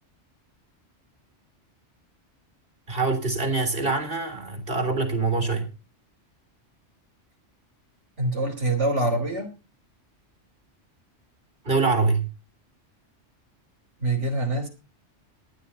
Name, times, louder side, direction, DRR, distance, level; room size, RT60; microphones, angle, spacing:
voice 1, 2.9-5.7 11.6-12.3, right 3 dB, 50° right, 6 dB, 3.7 m, -24 dB
voice 2, 8.2-9.5 11.7-11.8 14.0-14.7, right 2 dB, 75° right, 3 dB, 3.7 m, -25 dB
19.0 x 11.5 x 4.1 m, 0.31 s
omnidirectional pair, 1.2 m